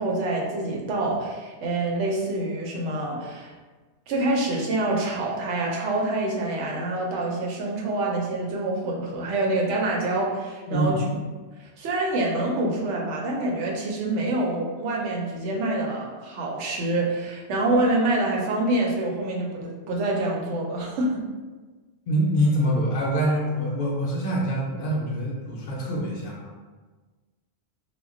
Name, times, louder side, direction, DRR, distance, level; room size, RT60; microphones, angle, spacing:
voice 1, 0.0-3.5 4.1-11.0 11.6-21.2, right 2 dB, 85° right, -1 dB, 0.9 m, -26 dB
voice 2, 22.1-26.5, right 1 dB, 60° left, -3 dB, 0.6 m, -25 dB
2.2 x 2.1 x 3.6 m, 1.3 s
omnidirectional pair, 1.2 m